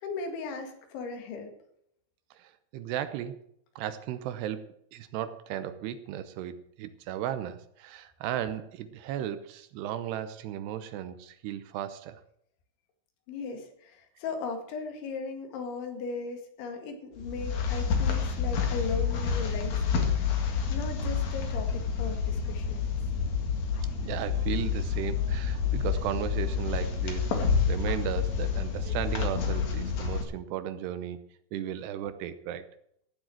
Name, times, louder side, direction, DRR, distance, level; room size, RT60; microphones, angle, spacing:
voice 1, 0.0-1.5 13.3-22.9, left 4 dB, 75° left, 6 dB, 4.3 m, -37 dB
voice 2, 2.4-3.4 3.8-12.2 24.0-31.2 31.5-32.7, right 10 dB, 75° right, 11 dB, 2.6 m, -35 dB
sound 1, 17.2-30.2, left 6 dB, 50° left, 2.4 m, -29 dB
16.0 x 7.8 x 7.7 m, 0.71 s
omnidirectional pair, 5.5 m